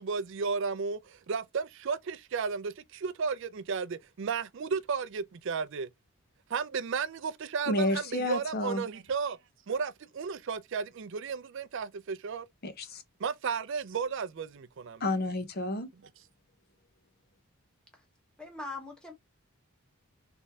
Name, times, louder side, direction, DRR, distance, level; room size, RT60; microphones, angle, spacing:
voice 1, 0.0-5.9 6.5-9.4 9.7-12.5 13.2-15.0, right 5 dB, 55° right, 0.4 m, -33 dB
voice 2, 7.7-8.8 12.6-13.0 15.0-15.9, left 1 dB, 45° left, 0.6 m, -30 dB
voice 3, 18.4-19.1, left 3 dB, 5° left, 1.0 m, -40 dB
3.4 x 3.1 x 2.7 m
head